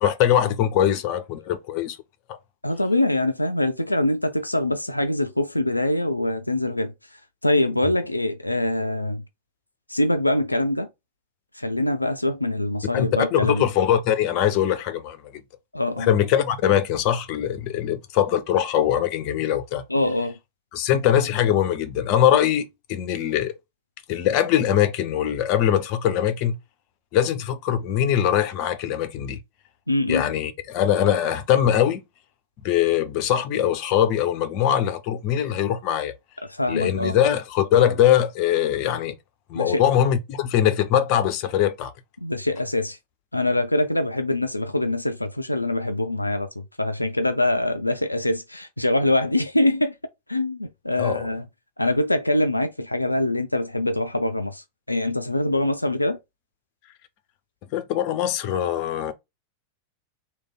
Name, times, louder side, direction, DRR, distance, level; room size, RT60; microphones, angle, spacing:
voice 1, 0.0-2.0 12.9-15.2 16.0-19.8 20.7-23.5 24.1-26.6 27.1-29.4 30.1-32.0 32.6-36.1 36.7-39.1 39.5-41.9 51.0-51.3 57.7-59.1, left 10 dB, 40° left, 0.6 m, -22 dB
voice 2, 2.6-9.2 9.9-10.9 11.5-13.7 15.7-16.1 19.9-20.3 29.9-30.2 36.4-37.2 39.5-39.8 42.2-43.0 43.3-49.9 50.3-51.5 51.8-56.2, left 1 dB, 85° left, 0.3 m, -24 dB
3.2 x 2.3 x 3.7 m
figure-of-eight pair, 90°, 0 cm